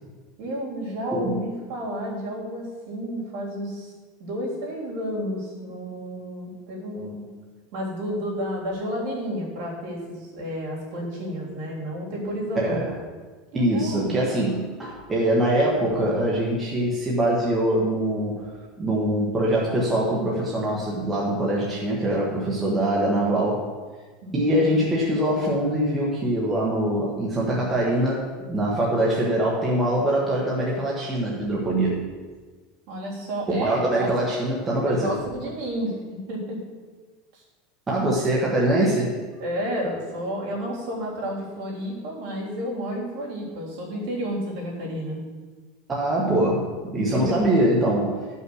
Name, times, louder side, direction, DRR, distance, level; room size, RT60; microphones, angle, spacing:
voice 1, 0.4-3.9 4.2-7.2 7.7-12.8 13.5-14.1 24.2-24.5 32.9-34.3 34.9-36.6 37.3-37.4 39.4-45.2 47.1-47.5, equal, 55° right, -4 dB, 3.4 m, -31 dB
voice 2, 12.5-12.9 13.5-18.5 18.8-23.7 24.3-32.1 33.5-35.1 37.9-39.1 45.9-48.2, right 1 dB, 15° right, -4 dB, 1.2 m, -23 dB
11.5 x 5.6 x 6.3 m, 1.4 s
supercardioid pair, 180°, 0 cm